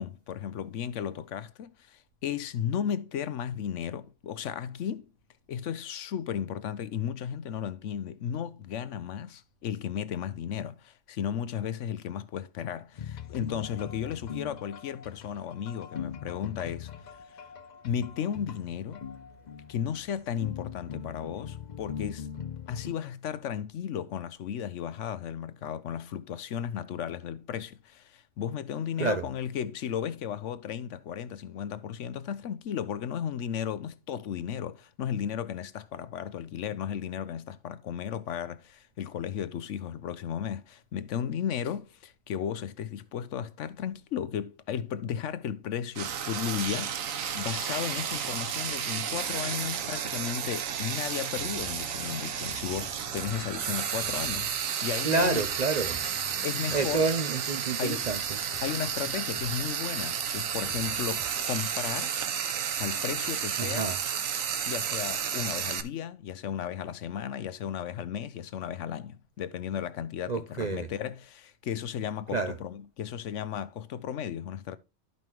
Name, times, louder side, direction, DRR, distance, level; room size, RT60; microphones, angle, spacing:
voice 1, 0.0-5.1 5.5-16.9 17.3-17.4 17.8-19.1 19.7-22.3 22.7-55.4 56.4-57.1 57.8-58.1 58.6-62.2 62.8-63.9 64.7-74.8, left 9 dB, 70° left, 0.9 m, -34 dB
sound 1, 13.0-22.9, left 7 dB, 55° left, 0.5 m, -41 dB
Frying (food), 46.0-65.8, right 8 dB, 80° right, 1.3 m, -32 dB
sound 2, 51.4-62.0, right 1 dB, 10° left, 0.6 m, -49 dB
voice 2, 55.0-56.0 56.7-58.4 63.6-64.0 70.3-70.9 72.3-72.5, right 3 dB, 45° right, 0.6 m, -28 dB
12.0 x 5.4 x 3.0 m
omnidirectional pair, 1.4 m